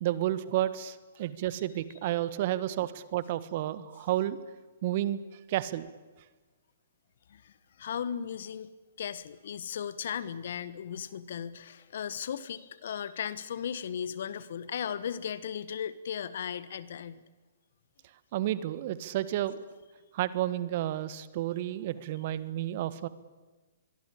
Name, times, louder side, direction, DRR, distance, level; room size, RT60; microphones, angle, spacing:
voice 1, 0.0-4.4 4.8-5.2 5.5-5.9 18.3-19.6 20.1-23.1, right 13 dB, 50° right, 15 dB, 1.5 m, -31 dB
voice 2, 7.3-8.7 9.0-17.2, left 8 dB, 60° left, 16 dB, 1.4 m, -36 dB
24.5 x 22.5 x 8.7 m, 1.2 s
hypercardioid pair, 125°, 0 cm